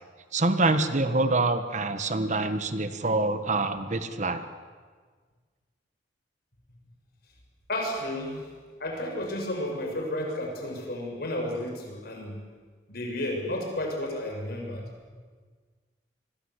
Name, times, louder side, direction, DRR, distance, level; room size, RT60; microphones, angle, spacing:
voice 1, 0.3-4.4, right 2 dB, 40° right, 9 dB, 1.4 m, -26 dB
voice 2, 7.7-8.5 8.8-12.4 12.9-14.9, left 1 dB, 60° left, 2 dB, 6.8 m, -32 dB
28.0 x 22.0 x 8.2 m, 1.5 s
head